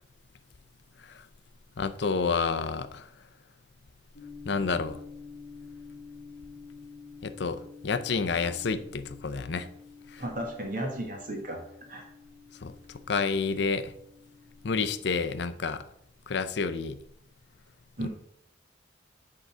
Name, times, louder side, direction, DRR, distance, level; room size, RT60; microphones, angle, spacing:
voice 1, 1.8-3.1 4.4-5.0 7.2-9.7 10.1-10.2 12.6-12.7 13.1-13.9 14.6-15.8 16.3-17.0 18.0-18.1, left 4 dB, 65° left, 0.5 m, -29 dB
sound 1, 4.2-15.5, left 5 dB, 80° left, 1.1 m, -49 dB
voice 2, 10.2-12.1 18.0-18.1, right 1 dB, 45° right, 1.5 m, -35 dB
8.0 x 3.8 x 6.0 m
head